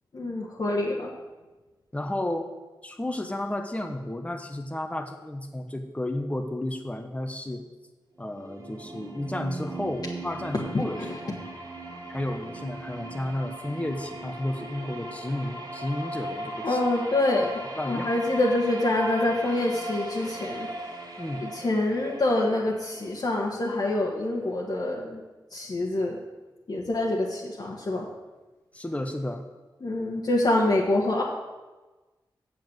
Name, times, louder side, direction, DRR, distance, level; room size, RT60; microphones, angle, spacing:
voice 1, 0.1-1.1 10.7-11.1 16.6-17.6 17.9-20.7 21.4-25.2 25.5-26.2 26.7-28.1 29.8-31.2, left 2 dB, 55° left, -4 dB, 1.5 m, -26 dB
voice 2, 1.9-2.5 2.8-7.6 8.2-11.0 11.2-11.4 12.1-16.8 17.8-18.1 21.2-21.5 28.7-29.4, left 1 dB, 15° left, 4 dB, 1.0 m, -32 dB
sound 1, 8.2-24.1, right 1 dB, 55° right, 1.9 m, -38 dB
7.3 x 7.2 x 7.9 m, 1.2 s
wide cardioid pair, 75°, 8 cm